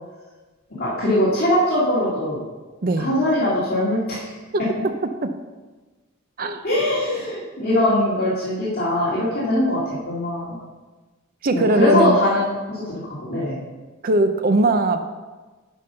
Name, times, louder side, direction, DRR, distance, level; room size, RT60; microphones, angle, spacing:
voice 1, 0.7-2.4 3.0-4.3 6.6-9.8 10.1-10.5 11.5-13.6, left 1 dB, 50° left, -8 dB, 2.3 m, -21 dB
voice 2, 2.8-3.1 4.5-5.3 6.4-6.6 11.4-12.2 14.0-15.1, right 2 dB, 45° right, 8 dB, 0.6 m, -20 dB
10.5 x 5.5 x 5.6 m, 1.3 s
head